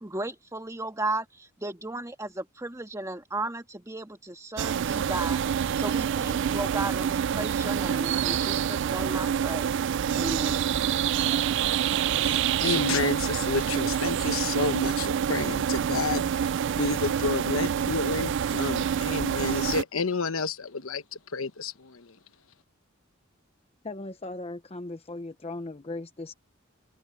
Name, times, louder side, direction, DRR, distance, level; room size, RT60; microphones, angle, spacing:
voice 1, 0.0-9.7 10.2-10.7, right 2 dB, 15° right, 1.8 m, -35 dB
sound 1, 4.6-19.8, right 8 dB, 60° right, 0.3 m, -27 dB
voice 2, 12.2-16.3 16.7-22.2, left 4 dB, 85° left, 1.1 m, -30 dB
voice 3, 23.8-26.3, left 2 dB, 30° left, 0.9 m, -37 dB
head